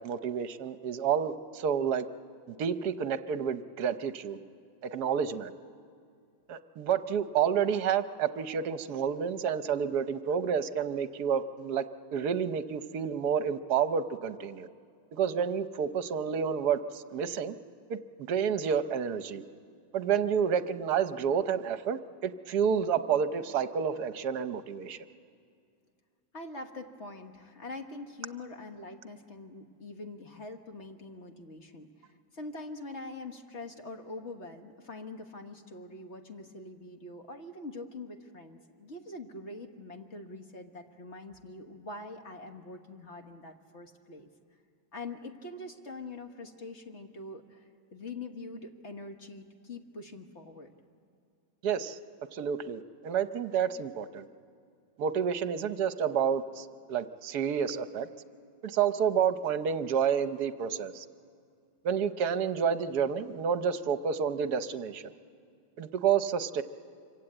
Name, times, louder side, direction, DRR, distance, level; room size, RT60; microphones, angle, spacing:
voice 1, 0.0-2.1 2.5-4.4 4.8-5.5 6.5-11.8 12.1-14.7 15.1-17.5 17.9-18.0 18.3-19.4 19.9-25.0 51.6-52.0 52.3-54.3 55.0-58.1 58.6-61.1 61.8-65.1 65.8-66.6, right 7 dB, 65° right, 11 dB, 1.3 m, -29 dB
voice 2, 26.3-44.3 44.9-50.7, left 2 dB, 40° left, 4 dB, 1.6 m, -44 dB
25.5 x 24.0 x 8.8 m, 2.3 s
omnidirectional pair, 2.0 m